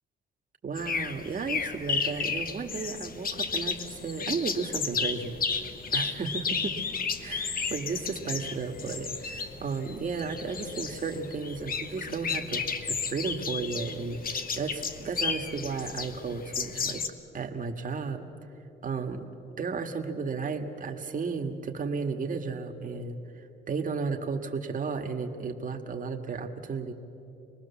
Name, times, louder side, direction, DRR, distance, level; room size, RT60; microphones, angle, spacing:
voice 1, 0.6-5.3 5.9-6.8 7.2-17.0 17.3-18.3 18.8-19.3 19.5-23.2 23.7-26.9, right 4 dB, 45° right, 4 dB, 1.9 m, -33 dB
sound 1, 0.8-17.1, left 5 dB, 45° left, 1.3 m, -33 dB
26.0 x 20.0 x 7.2 m, 2.9 s
cardioid pair, 90°, 20 cm